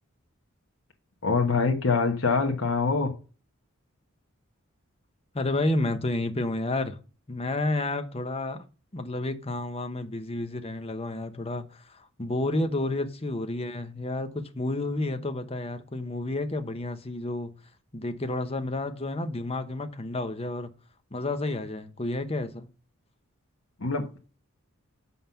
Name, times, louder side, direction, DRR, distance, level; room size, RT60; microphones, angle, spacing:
voice 1, 1.2-3.1 23.8-24.1, left 4 dB, 70° left, 1.2 m, -24 dB
voice 2, 5.3-7.0 7.3-8.6 8.9-17.6 17.9-20.7 21.1-22.7, left 2 dB, 30° left, 0.9 m, -30 dB
7.5 x 5.6 x 5.7 m
head